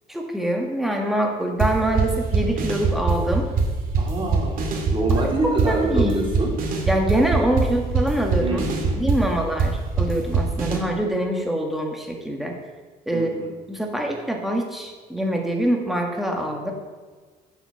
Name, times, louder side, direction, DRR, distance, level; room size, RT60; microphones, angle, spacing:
voice 1, 0.1-3.5 5.4-6.3 6.9-8.6 9.0-12.5 13.1-13.4 13.7-16.7, right 1 dB, ahead, 1 dB, 2.0 m, -24 dB
sound 1, 1.6-10.8, right 4 dB, 55° right, 2.4 m, -23 dB
voice 2, 4.0-6.5 8.4-9.0 13.1-13.5, right 2 dB, 30° right, -1 dB, 3.1 m, -26 dB
8.9 x 7.9 x 6.7 m, 1.4 s
cardioid pair, 110°, 17 cm